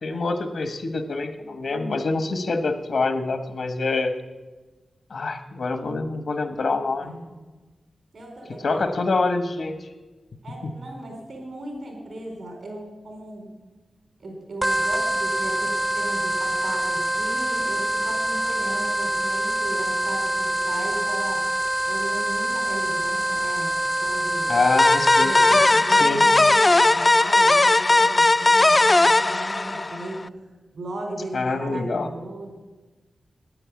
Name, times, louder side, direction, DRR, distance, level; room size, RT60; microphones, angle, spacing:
voice 1, 0.0-4.1 5.1-7.1 8.6-9.9 10.5-10.7 24.5-25.3 26.0-26.2 31.3-32.1, left 3 dB, 75° left, 8 dB, 1.2 m, -25 dB
voice 2, 7.0-7.4 8.1-9.0 10.4-13.5 14.2-21.4 21.8-23.7 24.0-24.6 25.2-30.4 30.7-32.5, right 1 dB, 80° right, 1 dB, 4.5 m, -36 dB
sound 1, 14.6-26.0, right 1 dB, 20° right, 0.5 m, -25 dB
sound 2, 24.8-30.2, left 2 dB, 35° left, 0.3 m, -18 dB
9.8 x 9.4 x 8.5 m, 1.2 s
cardioid pair, 45°, 0 cm